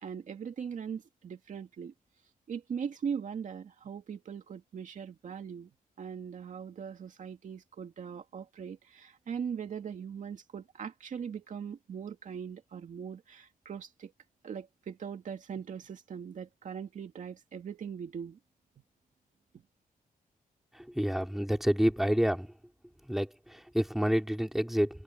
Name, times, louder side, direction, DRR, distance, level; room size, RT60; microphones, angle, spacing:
voice 1, 0.0-1.9 2.5-5.7 6.0-14.1 14.4-18.4, right 7 dB, 55° right, 2.3 m, -40 dB
voice 2, 20.7-22.5 23.0-25.0, equal, ahead, 3.3 m, -29 dB
wide cardioid pair, 175°, 15 cm